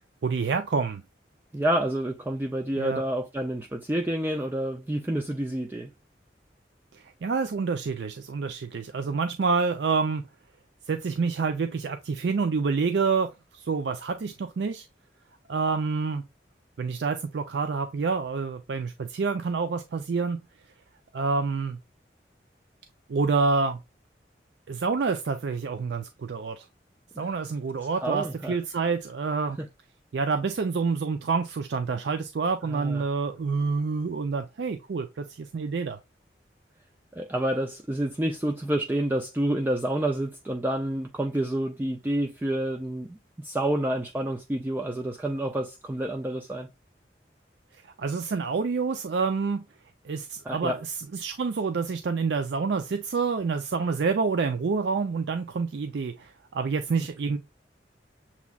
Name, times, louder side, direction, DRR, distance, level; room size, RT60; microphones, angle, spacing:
voice 1, 0.2-1.0 2.8-3.0 6.9-10.2 10.9-14.9 15.5-16.2 16.8-20.4 21.1-21.8 23.1-23.8 24.7-26.7 27.2-29.6 30.1-36.0 47.8-49.6 50.0-57.4, right 4 dB, 80° right, 0.4 m, -28 dB
voice 2, 1.5-5.9 27.2-27.3 28.0-28.6 29.6-29.7 32.6-33.0 37.1-46.7 50.4-50.8, right 1 dB, 10° right, 0.3 m, -29 dB
7.0 x 3.0 x 2.3 m
head